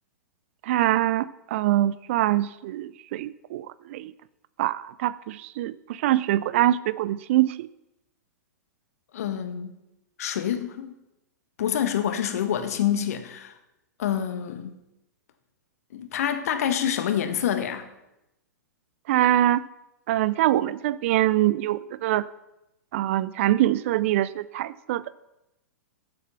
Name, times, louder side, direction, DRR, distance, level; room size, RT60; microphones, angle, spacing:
voice 1, 0.6-4.1 4.6-7.7 19.1-19.6 20.1-22.3 22.9-25.0, right 14 dB, 45° right, 18 dB, 0.4 m, -24 dB
voice 2, 9.1-9.7 10.2-10.9 11.6-13.5 14.0-14.8 15.9-17.9, left 9 dB, 55° left, 9 dB, 1.4 m, -27 dB
14.0 x 7.7 x 6.0 m, 0.92 s
figure-of-eight pair, 105°, 10 cm